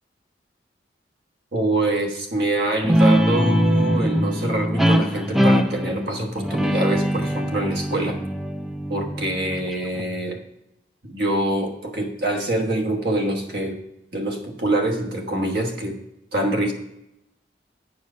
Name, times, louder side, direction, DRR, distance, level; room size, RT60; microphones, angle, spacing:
voice 1, 1.5-8.2 8.9-10.4 11.0-13.8 14.1-16.0 16.3-16.7, right 1 dB, 65° right, 3 dB, 1.3 m, -25 dB
Guitar, 2.8-10.0, equal, ahead, 0.4 m, -22 dB
9.4 x 4.9 x 5.5 m, 0.84 s
head